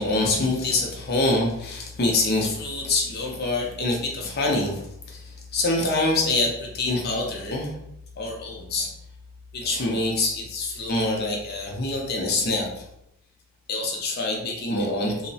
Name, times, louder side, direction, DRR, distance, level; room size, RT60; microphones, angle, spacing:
voice 1, 0.0-7.7 8.2-8.9 9.5-12.8 13.7-15.3, left 2 dB, 45° left, 0 dB, 0.5 m, -25 dB
2.7 x 2.0 x 2.7 m, 0.78 s
head